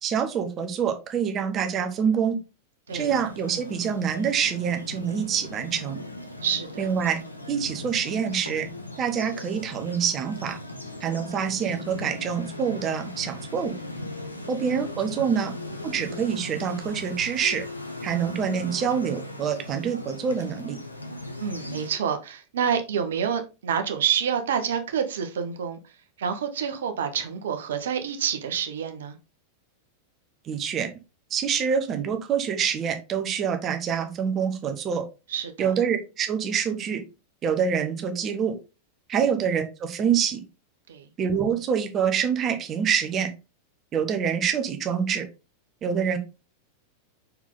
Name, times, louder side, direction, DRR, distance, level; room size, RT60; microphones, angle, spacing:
voice 1, 0.0-2.4 2.9-6.0 6.8-7.2 7.5-8.7 9.0-10.6 11.0-13.7 14.5-15.5 15.8-17.6 18.0-20.8 30.5-30.9 31.3-35.0 35.6-37.0 37.4-38.5 39.1-40.4 41.2-43.3 43.9-45.3 45.8-46.2, right 7 dB, 30° right, 1.1 m, -26 dB
sound 1, 2.9-21.9, left 1 dB, 85° left, 1.0 m, -38 dB
voice 2, 6.4-6.8 14.4-14.5 15.2-15.4 21.4-25.8 26.2-29.2 35.3-35.7 40.9-41.0, right 7 dB, 60° right, 1.1 m, -28 dB
5.5 x 4.6 x 3.8 m
figure-of-eight pair, 90°, 0 cm